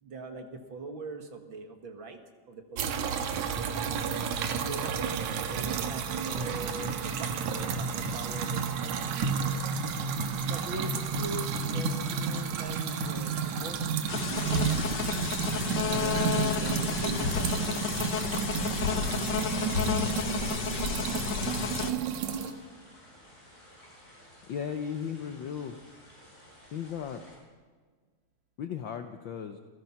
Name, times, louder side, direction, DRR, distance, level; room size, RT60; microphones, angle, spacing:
voice 1, 0.0-2.2 2.5-3.9 4.5-9.3 10.4-15.3 15.9-17.8, right 4 dB, 50° right, 6 dB, 2.0 m, -41 dB
sound 1, 2.8-22.5, right 6 dB, 75° right, 2.7 m, -31 dB
sound 2, 8.9-27.4, equal, 15° left, 7.7 m, -55 dB
sound 3, 14.1-21.9, left 6 dB, 45° left, 1.5 m, -31 dB
voice 2, 24.5-25.8 26.7-27.2 28.6-29.6, left 7 dB, 70° left, 7 dB, 1.1 m, -36 dB
28.5 x 15.5 x 5.9 m, 1.5 s
omnidirectional pair, 3.3 m